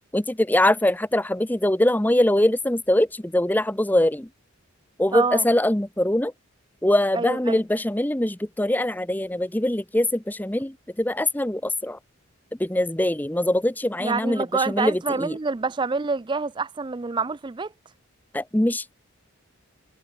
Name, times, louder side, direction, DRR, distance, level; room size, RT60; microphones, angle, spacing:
voice 1, 0.1-4.3 5.0-6.3 6.8-12.0 12.6-15.4 18.3-18.9, left 1 dB, 10° left, 0.7 m, -23 dB
voice 2, 5.1-5.5 7.1-7.6 14.0-17.7, right 4 dB, 20° right, 0.4 m, -27 dB
head